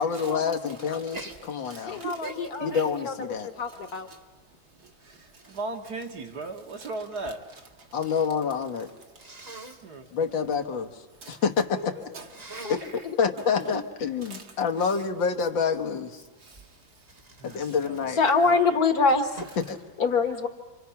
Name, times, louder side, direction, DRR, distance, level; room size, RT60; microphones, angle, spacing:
voice 1, 0.0-2.0 2.6-3.5 7.9-8.9 10.1-10.9 11.3-11.9 12.7-12.8 13.2-16.2 17.4-18.2 19.7-19.8, left 6 dB, 75° left, 5 dB, 2.0 m, -27 dB
voice 2, 0.7-2.4 2.7-2.8 3.3-3.5 4.1-4.2 4.7-8.2 9.2-10.7 11.2-11.4 11.9-13.0 13.6-13.8 14.2-14.6 16.4-18.1 18.5-18.8, right 3 dB, 55° right, 3 dB, 2.1 m, -41 dB
Sneeze, 1.1-1.4 1.9-4.2 4.9-7.4 7.7-8.3 9.2-9.8 12.2-13.0 16.5-18.8 19.4-19.7, right 2 dB, 25° right, 1.3 m, -46 dB
voice 3, 1.8-3.2 3.4-4.1 12.6-12.8 13.0-13.2 18.2-19.4 20.0-20.5, left 4 dB, 55° left, 7 dB, 1.7 m, -25 dB
29.0 x 25.0 x 5.8 m, 1.2 s
omnidirectional pair, 2.1 m